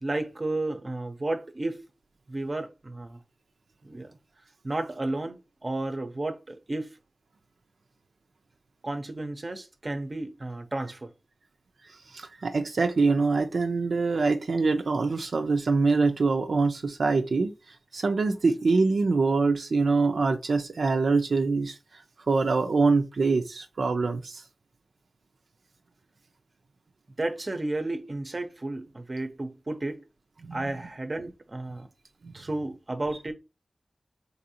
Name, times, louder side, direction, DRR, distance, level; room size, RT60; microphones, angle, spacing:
voice 1, 0.0-1.9 2.3-3.2 3.8-4.2 4.6-5.4 5.6-6.9 8.8-11.1 27.2-30.0 30.5-31.9 32.3-33.3, right 2 dB, 35° right, 0.6 m, -32 dB
voice 2, 12.1-17.5 17.9-21.8 22.3-24.4 30.4-30.6 32.2-32.3, right 4 dB, 75° right, 0.5 m, -24 dB
4.0 x 2.6 x 2.8 m
wide cardioid pair, 85°, 0 cm